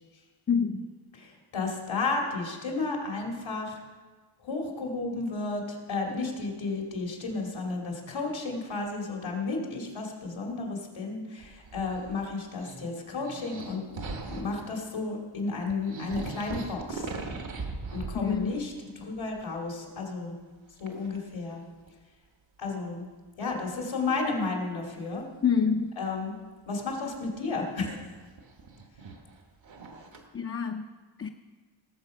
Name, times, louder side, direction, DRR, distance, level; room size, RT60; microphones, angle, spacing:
voice 1, 0.5-0.9 18.1-18.5 25.4-25.9 30.3-30.9 31.2-31.3, left 6 dB, 30° left, 3 dB, 0.5 m, -27 dB
voice 2, 1.1-3.8 4.4-17.1 17.9-20.4 20.8-21.6 22.6-23.0 23.4-25.2 26.0-26.4 26.7-28.0, left 3 dB, 85° left, 0 dB, 2.6 m, -32 dB
sound 1, 11.4-12.3 12.6-14.6 15.4-15.5 15.7-18.7 19.0-19.6 20.8-21.2 21.9-22.0 23.9-24.0 27.0-30.2, right 3 dB, 75° right, 1.6 m, -40 dB
18.5 x 7.3 x 5.4 m, 1.4 s
wide cardioid pair, 140°, 46 cm